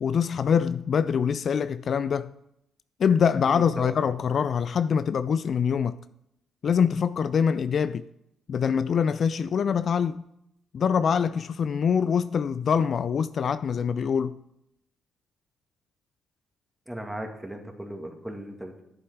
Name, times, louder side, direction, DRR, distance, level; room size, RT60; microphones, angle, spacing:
voice 1, 0.0-2.3 3.0-6.0 6.6-8.0 8.5-10.2 10.7-14.4, left 7 dB, 55° left, 0.3 m, -24 dB
voice 2, 3.5-3.9 16.9-18.8, right 1 dB, 5° right, 2.2 m, -37 dB
10.5 x 8.0 x 4.6 m
hypercardioid pair, 45°, 0 cm